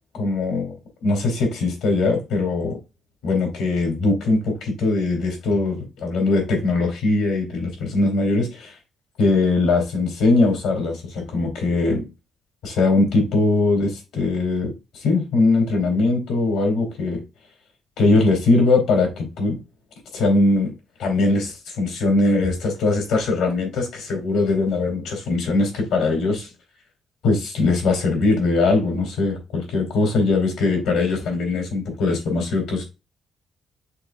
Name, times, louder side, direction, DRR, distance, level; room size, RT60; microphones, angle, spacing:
voice 1, 0.1-0.7 1.0-2.8 3.2-8.7 9.2-12.1 12.6-14.7 15.0-17.2 18.0-19.6 20.1-20.7 21.0-26.5 27.2-32.8, left 3 dB, 90° left, 2.6 m, -21 dB
5.9 x 3.5 x 2.5 m
cardioid pair, 90°, 0 cm